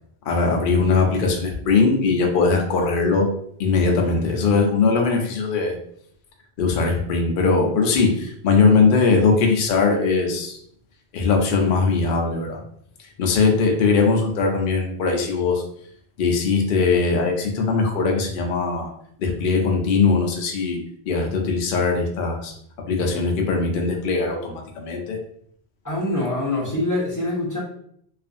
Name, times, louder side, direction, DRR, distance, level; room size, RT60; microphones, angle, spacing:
voice 1, 0.3-3.3 3.6-5.8 6.6-10.6 11.1-12.6 13.2-15.6 16.2-18.9 19.2-20.8 21.1-22.5 22.9-25.2, left 4 dB, 60° left, 1 dB, 0.7 m, -20 dB
voice 2, 25.8-27.6, left 2 dB, 20° left, -6 dB, 0.6 m, -24 dB
2.5 x 2.4 x 2.5 m, 0.67 s
omnidirectional pair, 1.0 m